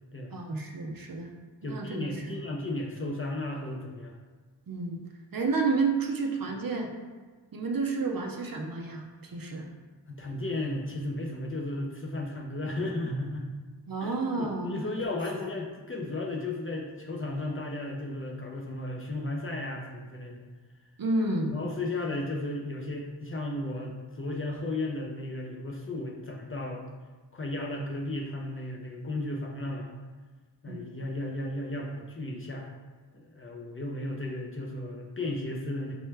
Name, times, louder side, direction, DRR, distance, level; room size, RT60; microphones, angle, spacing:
voice 1, 0.3-1.3 1.6-2.4 4.7-5.0 5.3-6.9 7.5-9.7 13.9-15.0 21.0-21.5 30.7-30.8, right 3 dB, 50° right, 2 dB, 0.5 m, -30 dB
voice 2, 1.6-4.2 10.1-13.5 14.0-20.5 21.4-26.8 27.3-29.9 30.6-32.7 33.1-35.9, left 2 dB, 30° left, -1 dB, 0.4 m, -34 dB
4.4 x 2.1 x 3.2 m, 1.4 s
wide cardioid pair, 95°, 45 cm